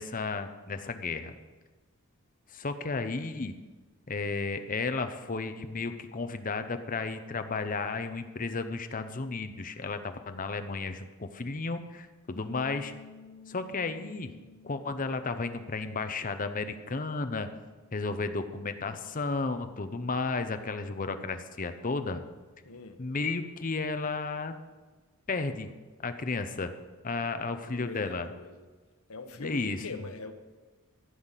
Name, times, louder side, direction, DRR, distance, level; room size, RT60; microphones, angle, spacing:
voice 1, 0.0-1.3 2.5-3.6 4.1-12.9 13.5-14.3 14.6-17.5 17.9-22.2 23.0-24.6 25.3-25.7 26.0-26.7 27.0-28.3 29.4-30.0, left 3 dB, 40° left, 9 dB, 0.7 m, -33 dB
sound 1, 12.3-18.5, left 5 dB, 65° left, 1.1 m, -53 dB
voice 2, 22.6-23.0 27.6-28.7 29.1-30.3, left 3 dB, 90° left, 7 dB, 1.1 m, -42 dB
14.5 x 5.8 x 8.2 m, 1.3 s
head